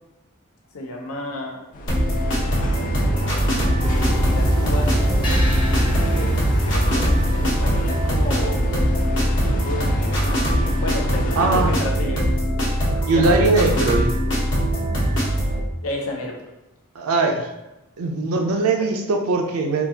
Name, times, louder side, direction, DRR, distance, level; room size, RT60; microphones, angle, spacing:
voice 1, 0.7-1.6 2.7-5.6 6.1-8.6 9.5-12.3 13.1-13.6 15.8-16.4 18.8-18.9, left 1 dB, 80° left, 0 dB, 0.7 m, -32 dB
sound 1, 1.7-11.8, equal, 40° left, 0.4 m, -29 dB
sound 2, 1.9-15.6, equal, 60° left, 1.0 m, -22 dB
sound 3, 3.8-8.9, right 1 dB, 25° left, 0.8 m, -24 dB
voice 2, 11.4-11.7 13.1-14.1 17.0-17.5 18.0-19.9, right 3 dB, 90° right, 3 dB, 0.5 m, -20 dB
3.7 x 2.3 x 2.8 m, 0.95 s
head